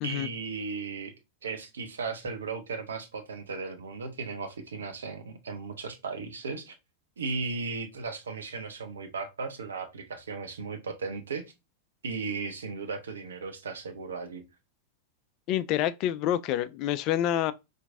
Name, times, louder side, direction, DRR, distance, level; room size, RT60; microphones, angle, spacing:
voice 1, 0.0-1.1 1.4-6.7 7.2-11.5 12.0-14.4, right 4 dB, 70° right, 0.7 m, -36 dB
voice 2, 15.5-17.5, left 12 dB, 40° left, 0.3 m, -27 dB
4.4 x 2.5 x 2.5 m
figure-of-eight pair, 90°, 0 cm